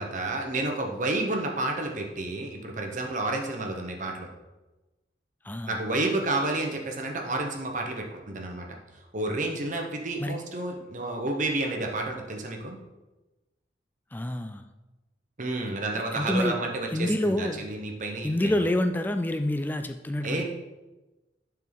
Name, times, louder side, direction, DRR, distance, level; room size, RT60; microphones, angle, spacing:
voice 1, 0.0-4.3 5.7-8.8 9.1-12.8 15.4-18.5 20.2-20.4, right 2 dB, 45° right, 2 dB, 1.1 m, -30 dB
voice 2, 5.4-5.8 10.2-10.4 14.1-14.6 16.1-16.6 16.9-17.6 18.2-20.4, left 1 dB, 10° left, 7 dB, 0.3 m, -27 dB
10.5 x 4.6 x 4.0 m, 1.1 s
head